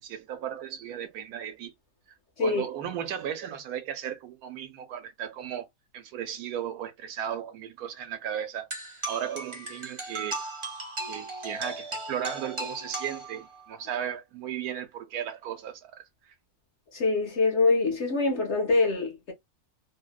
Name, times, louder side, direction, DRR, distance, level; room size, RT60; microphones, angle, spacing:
voice 1, 0.0-1.7 2.4-5.6 5.9-8.7 9.1-10.4 11.1-16.3, right 9 dB, 75° right, 1.1 m, -35 dB
sound 1, 8.7-13.7, right 2 dB, 35° right, 0.4 m, -37 dB
voice 2, 16.9-19.3, left 3 dB, 55° left, 0.8 m, -24 dB
2.7 x 2.1 x 2.2 m
omnidirectional pair, 1.7 m